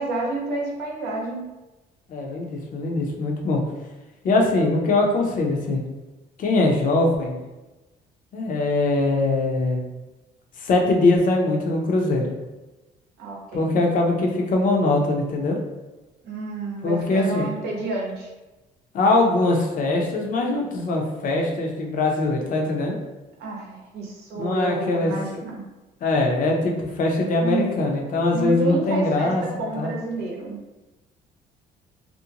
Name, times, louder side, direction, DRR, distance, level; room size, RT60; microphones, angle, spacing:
voice 1, 0.0-1.4 13.2-13.7 16.2-18.3 23.4-25.6 27.4-27.8 28.3-30.6, right 2 dB, 75° right, -2 dB, 0.7 m, -29 dB
voice 2, 2.1-3.6 4.2-5.8 6.4-7.4 8.3-9.8 10.6-12.3 13.5-15.6 16.8-17.5 18.9-23.0 24.3-25.1 26.0-29.4 29.7-29.9, left 2 dB, 50° left, 0 dB, 0.6 m, -22 dB
2.5 x 2.1 x 2.8 m, 1.1 s
cardioid pair, 110°, 17 cm